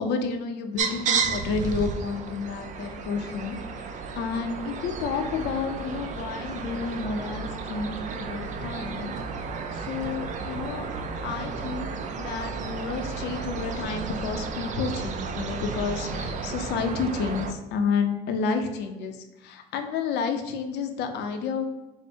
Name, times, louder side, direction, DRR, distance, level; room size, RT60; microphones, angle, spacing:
voice 1, 0.0-3.9 4.2-9.1 9.7-10.9 11.2-11.9 12.2-21.6, left 5 dB, 80° left, 6 dB, 0.6 m, -30 dB
sound 1, 0.8-17.5, right 5 dB, 45° right, 0.4 m, -33 dB
4.5 x 2.1 x 4.3 m, 1.0 s
cardioid pair, 110°, 17 cm